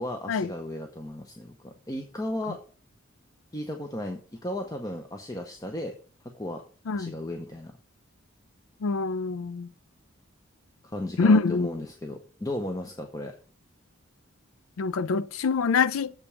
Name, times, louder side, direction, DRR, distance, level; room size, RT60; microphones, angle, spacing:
voice 1, 0.0-2.6 3.5-6.0 6.3-6.6 6.9-7.7 10.8-13.3, left 1 dB, 15° left, 0.7 m, -35 dB
voice 2, 8.8-9.7 11.2-11.7 14.8-16.1, left 4 dB, 85° left, 0.4 m, -24 dB
7.1 x 5.2 x 6.8 m
head